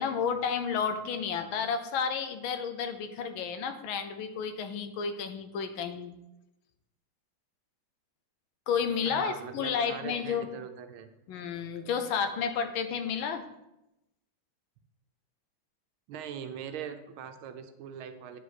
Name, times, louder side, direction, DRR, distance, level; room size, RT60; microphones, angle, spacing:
voice 1, 0.0-6.1 8.7-10.5 11.3-13.5, left 6 dB, 80° left, 8 dB, 1.5 m, -31 dB
voice 2, 9.1-11.1 16.1-18.4, right 8 dB, 85° right, 8 dB, 1.5 m, -41 dB
9.0 x 4.9 x 4.1 m, 0.89 s
omnidirectional pair, 2.2 m